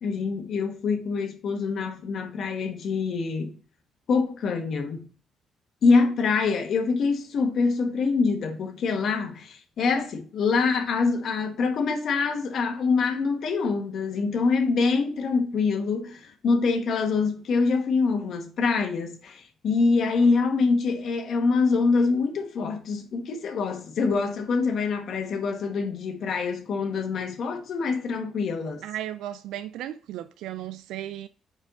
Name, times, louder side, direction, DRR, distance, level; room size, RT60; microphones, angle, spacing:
voice 1, 0.0-3.5 4.1-5.0 5.8-28.8, left 4 dB, 65° left, 1.3 m, -25 dB
voice 2, 28.8-31.3, right 12 dB, 90° right, 0.3 m, -35 dB
4.8 x 4.6 x 4.9 m
cardioid pair, 90°, 0 cm